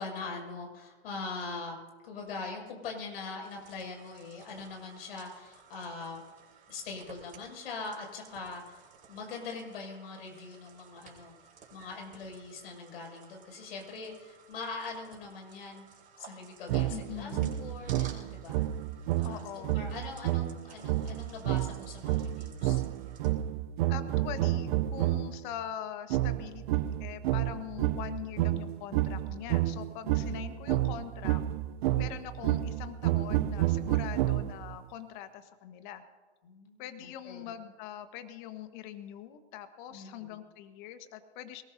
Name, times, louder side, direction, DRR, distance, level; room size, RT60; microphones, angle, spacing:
voice 1, 0.0-1.8 2.0-6.2 6.7-11.3 11.7-15.8 16.2-18.6 19.2-22.8 30.2-30.4 36.4-37.5 39.9-40.4, left 4 dB, 65° left, 1 dB, 6.7 m, -42 dB
sound 1, 3.4-23.3, right 6 dB, 25° right, 4.6 m, -56 dB
sound 2, 16.7-25.4 26.1-34.8, right 14 dB, 50° right, 0.7 m, -30 dB
voice 2, 16.9-17.7 19.2-19.7 23.9-31.4 31.9-36.0 36.8-41.6, left 10 dB, 45° left, 9 dB, 1.5 m, -43 dB
22.5 x 19.5 x 2.8 m, 1.3 s
hypercardioid pair, 120°, 33 cm